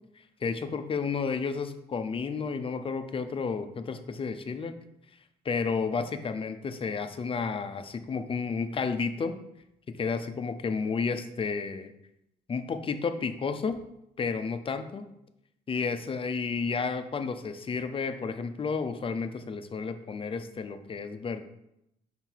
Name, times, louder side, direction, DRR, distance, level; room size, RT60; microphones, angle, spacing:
voice 1, 0.4-4.7 5.4-9.3 10.0-11.9 12.5-13.8 14.2-15.1 15.7-21.4, left 5 dB, 35° left, 9 dB, 0.5 m, -31 dB
5.8 x 3.8 x 4.5 m, 0.81 s
cardioid pair, 100°, 17 cm